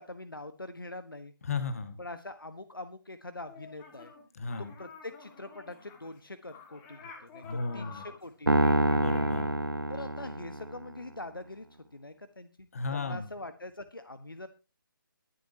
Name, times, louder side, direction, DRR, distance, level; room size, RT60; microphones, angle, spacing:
voice 1, 0.0-1.3 2.0-4.1 4.6-8.9 9.9-11.7 11.9-14.5, left 2 dB, 75° left, 10 dB, 1.4 m, -44 dB
voice 2, 1.5-2.0 4.4-4.7 7.4-8.0 8.9-9.5 12.7-13.3, left 4 dB, 45° left, 9 dB, 1.9 m, -34 dB
sound 1, 3.5-4.2 4.5-9.4, left 5 dB, 15° left, 2.3 m, -50 dB
Piano, 8.5-10.9, right 1 dB, 85° right, 1.2 m, -27 dB
22.5 x 7.9 x 2.9 m, 0.31 s
figure-of-eight pair, 150°, 12 cm